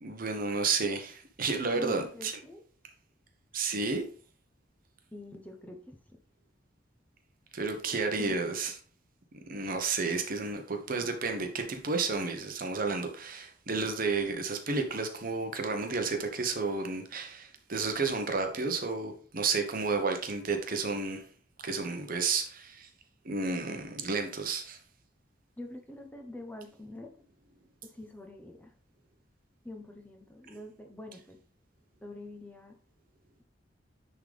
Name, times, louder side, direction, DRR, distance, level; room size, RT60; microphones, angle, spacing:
voice 1, 0.0-2.4 3.5-4.1 7.5-8.7 9.5-21.2 21.6-22.9 23.2-24.8, right 4 dB, 50° right, 1.0 m, -31 dB
voice 2, 1.7-2.6 5.1-6.2 8.2-8.4 25.6-27.1 27.8-28.7 29.6-31.4 32.0-32.8, left 2 dB, 10° left, 0.9 m, -45 dB
9.8 x 3.8 x 3.4 m
head